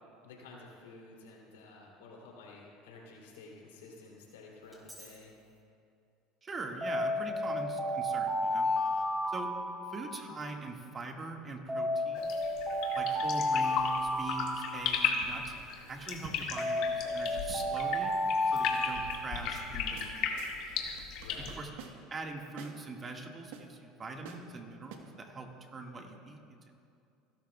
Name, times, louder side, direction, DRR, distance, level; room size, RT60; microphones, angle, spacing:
voice 1, 0.2-5.3 21.2-21.5, left 3 dB, 90° left, -2 dB, 3.0 m, -52 dB
Alarm, 4.7-5.1 6.8-10.6 11.7-15.4 16.6-19.8, left 1 dB, 15° right, 3.7 m, -32 dB
voice 2, 6.4-8.7 9.3-9.5 9.9-12.3 12.9-15.5 15.9-18.2 18.5-20.5 21.6-21.7 22.1-26.7, right 3 dB, 30° right, 2 dB, 1.8 m, -42 dB
sound 1, 12.1-21.6, left 7 dB, 70° left, 1.8 m, -36 dB
sound 2, 12.8-13.4 15.2-15.7 16.2-18.3 18.7-19.2 19.6-19.7 20.0-20.1 20.4-20.6 21.0-22.2 22.6-22.8 23.5-23.6 24.2-24.5 24.9-25.0, right 7 dB, 80° right, 1.2 m, -50 dB
29.5 x 12.0 x 2.3 m, 2.5 s
supercardioid pair, 90°, 0 cm